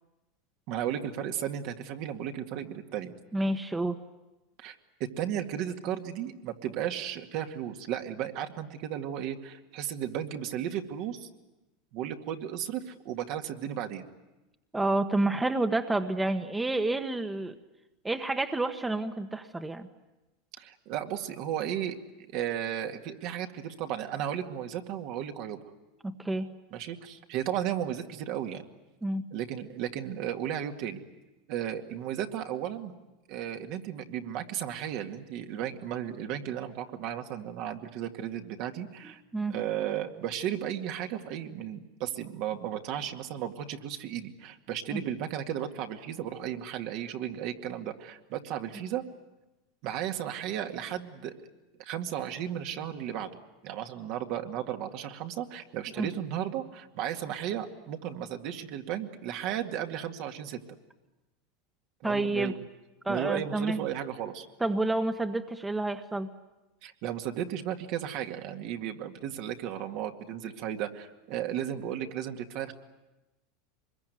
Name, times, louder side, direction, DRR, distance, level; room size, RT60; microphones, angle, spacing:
voice 1, 0.7-3.1 4.6-11.3 11.9-14.1 20.6-25.6 26.7-28.6 29.3-31.0 31.5-33.0 33.3-39.2 39.5-49.0 49.8-51.3 51.8-53.3 53.6-60.6 62.0-62.5 63.1-64.5 66.8-72.7, right 10 dB, 60° right, 4 dB, 2.1 m, -34 dB
voice 2, 3.3-4.0 14.7-17.5 18.0-19.9 26.0-26.5 29.0-29.3 39.0-39.5 44.9-45.0 56.0-56.1 62.0-62.5 63.0-63.8 64.6-66.3, right 2 dB, 10° right, 8 dB, 1.3 m, -29 dB
24.5 x 22.0 x 9.4 m, 1.0 s
hypercardioid pair, 100°, 0 cm